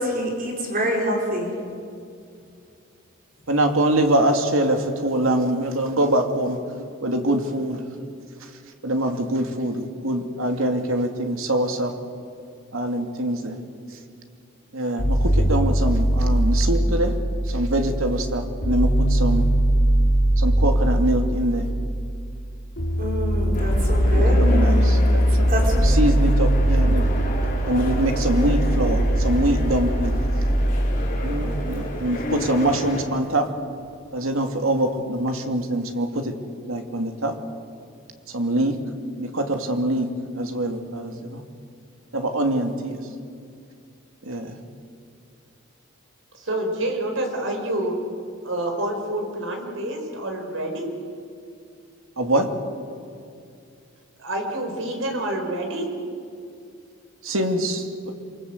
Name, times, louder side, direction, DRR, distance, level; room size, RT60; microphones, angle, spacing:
voice 1, 0.0-1.5 23.0-24.5 25.5-25.8, equal, 40° right, 0 dB, 4.7 m, -26 dB
voice 2, 3.5-6.6 7.0-7.8 8.8-11.9 12.7-13.6 14.7-17.2 17.5-19.5 20.4-21.7 24.4-25.5 25.8-27.1 27.7-30.2 31.2-33.5 34.1-36.3 36.7-37.4 38.3-38.8 39.2-41.4 42.1-43.0 44.2-44.6 52.2-52.5 57.2-58.1, right 1 dB, 90° right, 4 dB, 2.7 m, -24 dB
sound 1, 15.0-32.9, equal, 60° left, 3.9 m, -21 dB
sound 2, 23.5-33.0, left 1 dB, 40° left, 4.8 m, -32 dB
voice 3, 46.3-48.0 48.4-51.0 54.2-56.0, right 1 dB, 70° right, 3 dB, 5.2 m, -27 dB
27.0 x 24.0 x 8.2 m, 2.4 s
head